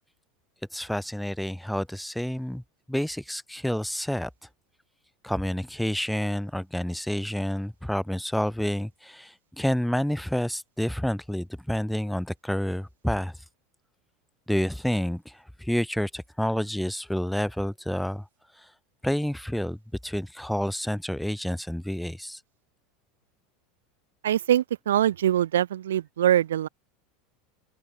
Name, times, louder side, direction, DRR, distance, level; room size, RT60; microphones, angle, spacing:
voice 1, 0.7-2.6 2.9-4.3 5.2-13.3 14.5-18.2 19.0-22.4, equal, ahead, 1.4 m, -29 dB
voice 2, 24.2-26.7, right 11 dB, 85° right, 0.5 m, -23 dB
open air
hypercardioid pair, 90°, 0 cm